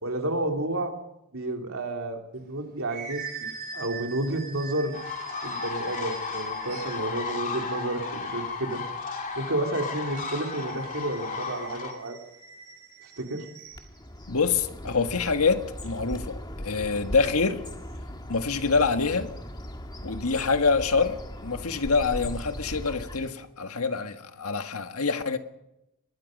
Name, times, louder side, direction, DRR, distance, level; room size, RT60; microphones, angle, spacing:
voice 1, 0.0-0.9 1.3-3.5 3.7-4.9 5.4-8.8 9.4-12.2 13.0-13.4, right 1 dB, 65° right, 3.3 m, -31 dB
sound 1, 2.4-7.2 9.9-13.9, right 5 dB, 45° right, 4.2 m, -43 dB
sound 2, 4.9-11.9, left 4 dB, 40° left, 3.1 m, -34 dB
Bird, 13.7-23.4, equal, 20° left, 1.9 m, -39 dB
voice 2, 14.3-17.6 18.3-19.3 20.0-25.4, left 4 dB, 75° left, 1.6 m, -26 dB
25.0 x 21.0 x 5.3 m
head